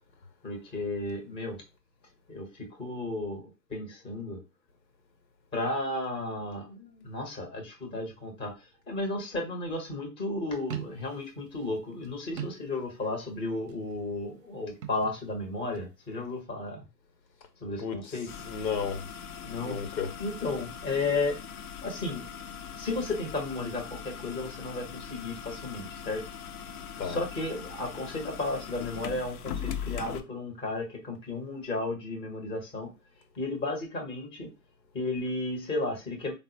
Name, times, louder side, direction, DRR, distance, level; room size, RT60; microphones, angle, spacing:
voice 1, 0.4-1.6 2.3-4.4 5.5-16.8 17.6-18.3 19.4-19.8 20.2-21.4 21.8-22.3 22.8-26.2 27.0-32.9 33.4-34.5 34.9-36.3, left 2 dB, 10° left, 0.7 m, -33 dB
sound 1, 10.6-13.2 13.5-14.1 14.7-15.9, right 10 dB, 35° right, 0.6 m, -41 dB
voice 2, 17.8-19.0 19.5-20.2 27.0-27.3, left 6 dB, 80° left, 1.0 m, -34 dB
sound 2, 18.3-30.2, left 8 dB, 60° left, 0.6 m, -40 dB
3.7 x 2.0 x 2.7 m
hypercardioid pair, 130°, 50 cm